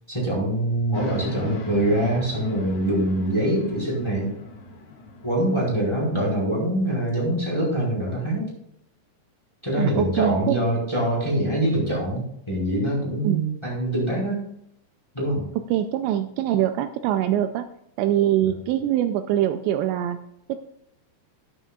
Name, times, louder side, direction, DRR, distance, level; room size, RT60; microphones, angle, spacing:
voice 1, 0.1-4.3 5.2-8.5 9.6-12.2 12.5-14.4 15.1-15.4, right 1 dB, 5° left, -4 dB, 3.8 m, -24 dB
sound 1, 0.9-6.4, left 2 dB, 80° left, 1.3 m, -39 dB
voice 2, 9.8-10.6 13.2-13.4 15.7-17.7 18.0-20.2 20.5-20.6, right 11 dB, 90° right, 9 dB, 2.5 m, -23 dB
12.5 x 11.0 x 2.4 m, 0.74 s
omnidirectional pair, 5.6 m